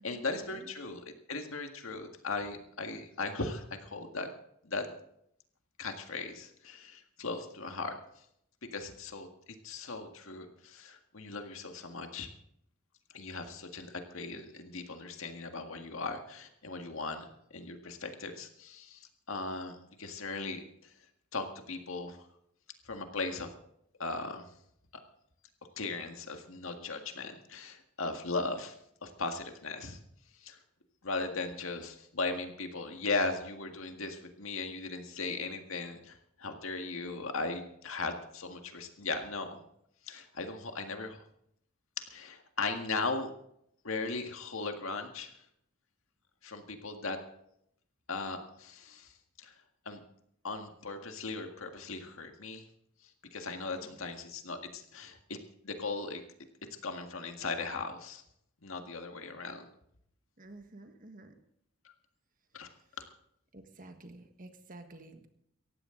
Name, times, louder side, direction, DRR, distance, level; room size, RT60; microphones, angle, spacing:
voice 1, 0.0-4.3 4.6-4.9 5.8-8.0 8.7-9.3 9.6-12.3 13.1-17.3 17.5-20.6 21.3-22.2 22.9-23.5 24.0-24.5 25.8-28.7 29.0-30.0 30.4-30.6 31.0-39.6 40.1-41.2 42.0-43.3 43.8-45.3 46.4-47.2 48.1-49.1 49.4-49.5 49.9-50.0 50.4-52.6 53.3-55.4 55.6-56.2 56.8-58.2 58.6-59.6 61.8-61.9 62.5-62.7, left 3 dB, 70° left, 5 dB, 1.8 m, -38 dB
voice 2, 60.4-61.3 63.5-65.3, right 2 dB, 40° right, 7 dB, 1.5 m, -51 dB
18.0 x 15.0 x 3.9 m, 0.72 s
head